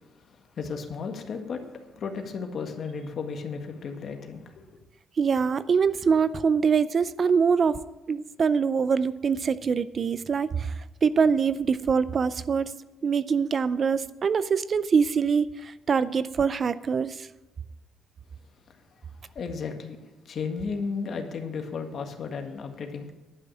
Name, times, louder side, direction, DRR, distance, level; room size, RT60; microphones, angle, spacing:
voice 1, 0.5-4.7 19.3-23.1, left 5 dB, 55° left, 5 dB, 1.6 m, -34 dB
voice 2, 5.2-7.8 8.1-10.7 11.0-12.7 13.0-17.3, right 6 dB, 45° right, 16 dB, 0.5 m, -24 dB
11.0 x 6.1 x 8.8 m, 1.0 s
cardioid pair, 90°, 0 cm